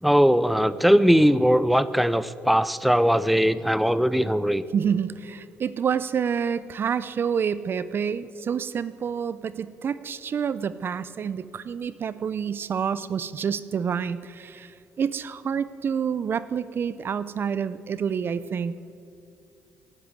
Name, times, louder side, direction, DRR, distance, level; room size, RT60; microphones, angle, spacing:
voice 1, 0.0-4.6, equal, ahead, 15 dB, 0.6 m, -20 dB
voice 2, 4.7-18.7, right 7 dB, 50° right, 15 dB, 0.6 m, -28 dB
16.0 x 9.6 x 9.3 m, 2.5 s
supercardioid pair, 70°, 5 cm